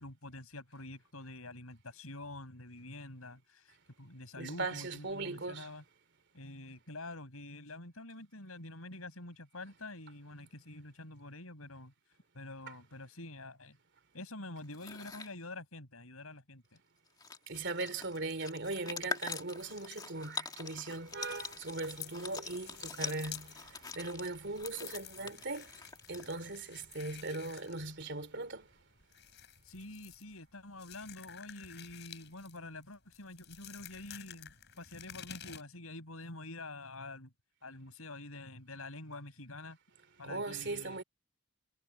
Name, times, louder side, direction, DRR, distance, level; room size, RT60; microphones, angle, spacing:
voice 1, 0.0-5.8 6.3-11.9 12.3-13.8 14.1-16.6 25.2-25.4 29.6-37.3 37.6-39.8 40.2-41.0, left 2 dB, 75° left, 6.7 m, -47 dB
voice 2, 4.4-5.7 17.5-25.8 26.1-28.7 40.2-41.0, right 3 dB, 55° right, 3.1 m, -39 dB
sound 1, 14.6-15.3 16.8-16.9 17.1-26.6, left 4 dB, 20° left, 2.1 m, -44 dB
sound 2, 20.9-35.6, left 10 dB, 50° left, 7.4 m, -52 dB
head